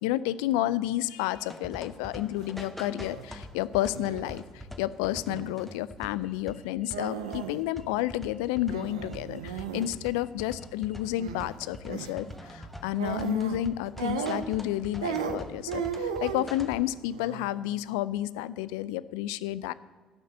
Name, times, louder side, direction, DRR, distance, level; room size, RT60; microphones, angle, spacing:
voice 1, 0.0-4.4 4.8-19.7, left 14 dB, 75° left, 17 dB, 0.4 m, -31 dB
sound 1, 1.3-17.0, equal, 5° left, 1.3 m, -44 dB
sound 2, 2.2-2.5 2.8-3.3 3.9-4.4 5.3-5.7 6.9-7.6 7.9-8.0 8.7-9.9 11.2-11.5 11.9-12.1 13.0-13.6 14.0-14.7 15.0-16.5 17.1-17.5, right 7 dB, 80° right, 0.6 m, -35 dB
12.0 x 5.9 x 8.4 m, 1.4 s
hypercardioid pair, 50°, 3 cm